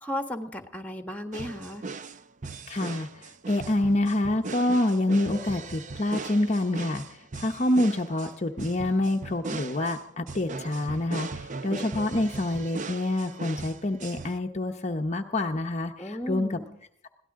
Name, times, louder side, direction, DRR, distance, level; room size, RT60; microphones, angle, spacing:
voice 1, 0.0-1.9 16.0-16.8, equal, 10° left, 6 dB, 1.5 m, -35 dB
sound 1, 1.3-14.4, right 3 dB, 40° right, 0.6 m, -39 dB
voice 2, 2.7-7.0 7.4-16.6, left 1 dB, 35° left, 3 dB, 0.9 m, -27 dB
22.0 x 17.0 x 3.7 m, 0.72 s
head